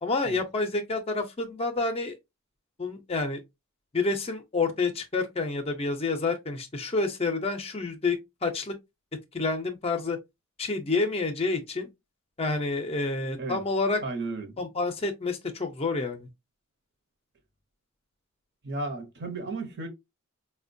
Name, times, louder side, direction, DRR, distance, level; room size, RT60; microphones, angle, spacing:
voice 1, 0.0-2.2 2.8-3.4 3.9-8.7 9.3-10.2 10.6-11.9 12.4-14.0 14.6-16.3, left 3 dB, 25° left, 0.5 m, -28 dB
voice 2, 14.0-14.6 18.6-19.9, right 3 dB, 50° right, 0.8 m, -34 dB
4.2 x 2.1 x 2.5 m
head